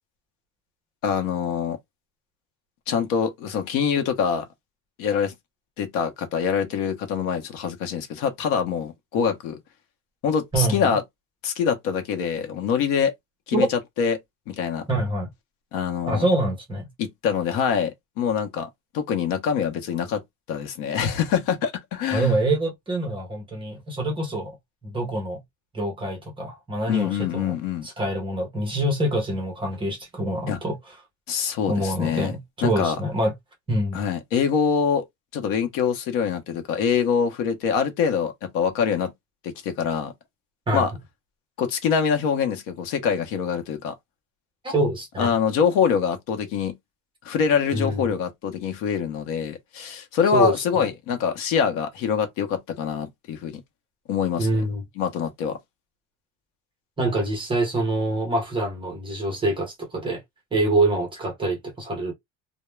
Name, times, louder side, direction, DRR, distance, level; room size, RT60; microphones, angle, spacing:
voice 1, 1.0-1.8 2.9-4.5 5.0-5.3 5.8-9.6 10.2-11.0 11.4-13.1 13.5-14.2 14.5-14.9 15.7-16.2 17.0-18.7 18.9-20.2 20.5-22.3 26.9-27.9 30.5-30.6 31.3-32.4 32.6-33.0 33.9-35.0 35.3-39.1 39.4-40.1 40.7-40.9 41.6-43.9 45.2-46.8 47.2-53.6 54.1-54.5 55.0-55.6, left 7 dB, 60° left, 0.7 m, -24 dB
voice 2, 10.5-11.0 13.5-13.7 14.9-15.3 16.1-16.9 22.1-24.5 24.8-25.4 25.7-27.5 27.8-30.8 31.7-33.3 33.7-34.0 40.7-40.8 44.6-45.3 47.7-48.1 50.3-50.9 54.4-54.8 57.0-60.2 60.5-62.1, right 1 dB, 15° right, 0.6 m, -25 dB
2.2 x 2.1 x 3.1 m
cardioid pair, 180°, 37 cm